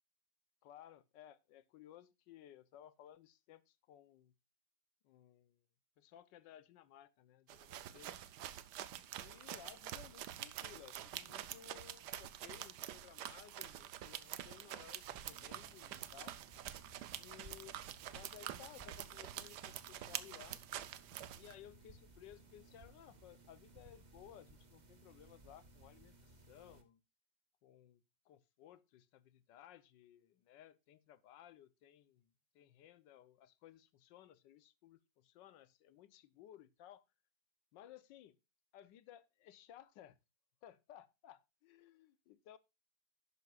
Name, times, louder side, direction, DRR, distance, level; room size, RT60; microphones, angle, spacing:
voice 1, 0.6-4.3 5.0-5.6 6.0-8.3 9.1-16.4 17.2-17.8 18.1-20.6 21.4-27.0 27.6-32.3 32.5-37.0 37.7-38.4 38.7-40.2 40.6-42.6, left 11 dB, 80° left, 1.4 m, -59 dB
sound 1, 7.5-21.5, right 11 dB, 70° right, 1.2 m, -47 dB
sound 2, 15.0-26.8, right 2 dB, 30° right, 1.0 m, -62 dB
12.0 x 9.6 x 2.4 m
omnidirectional pair, 2.0 m